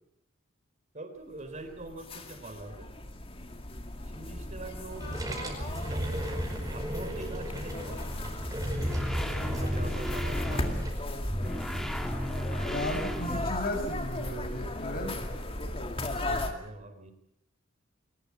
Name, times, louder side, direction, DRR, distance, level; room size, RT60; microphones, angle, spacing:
voice 1, 0.9-2.9 4.0-6.2 6.7-8.6 9.4-10.9 13.2-13.4 16.1-17.1, right 2 dB, 35° right, 8 dB, 3.9 m, -44 dB
sound 1, 1.5-16.5, left 1 dB, 25° left, 2.2 m, -37 dB
sound 2, 4.9-10.9, equal, 20° right, 5.1 m, -35 dB
sound 3, 8.5-13.9, equal, ahead, 2.1 m, -34 dB
voice 2, 12.7-15.3, left 1 dB, 50° left, 5 dB, 6.8 m, -35 dB
22.0 x 20.0 x 8.6 m, 0.76 s
head